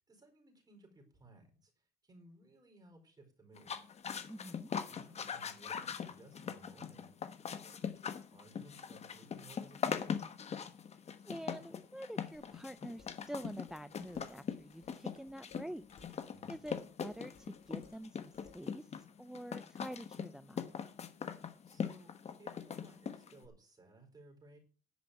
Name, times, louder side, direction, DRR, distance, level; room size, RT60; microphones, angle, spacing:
voice 1, 0.0-1.7 2.0-3.7 4.9-7.1 7.5-10.1 16.3-16.6 21.7-24.6, right 2 dB, 25° right, 4 dB, 4.4 m, -60 dB
sound 1, 3.6-23.5, left 7 dB, 40° left, 1.2 m, -41 dB
voice 2, 4.3-4.7 11.2-20.6, equal, 5° right, 13 dB, 0.4 m, -47 dB
Dishes pots and pans, 12.3-18.7, left 5 dB, 60° left, 3.8 m, -64 dB
10.5 x 5.1 x 8.3 m, 0.40 s
cardioid pair, 110°, 17 cm